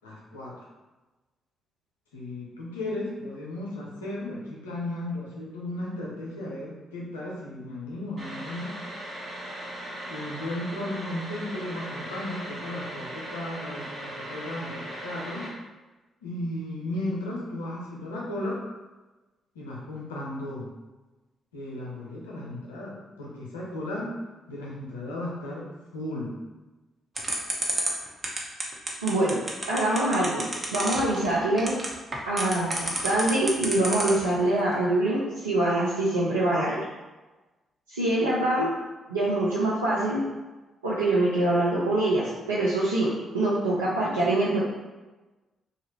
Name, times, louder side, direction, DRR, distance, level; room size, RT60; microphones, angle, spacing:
voice 1, 0.0-0.5 2.1-8.7 10.0-15.5 16.2-18.6 19.5-20.7 21.5-24.1 24.5-26.4, left 1 dB, 85° left, -4 dB, 0.6 m, -35 dB
sound 1, 8.2-15.5, right 1 dB, 50° right, 1.2 m, -38 dB
sound 2, 27.2-34.3, right 2 dB, 35° right, 0.7 m, -29 dB
voice 2, 29.0-29.4 29.7-30.5 30.7-31.7 32.2-36.8 37.9-38.7 39.1-40.2 40.8-43.1 43.3-44.6, right 1 dB, 85° right, -9 dB, 0.4 m, -24 dB
2.7 x 2.3 x 3.1 m, 1.2 s
figure-of-eight pair, 40°, 0 cm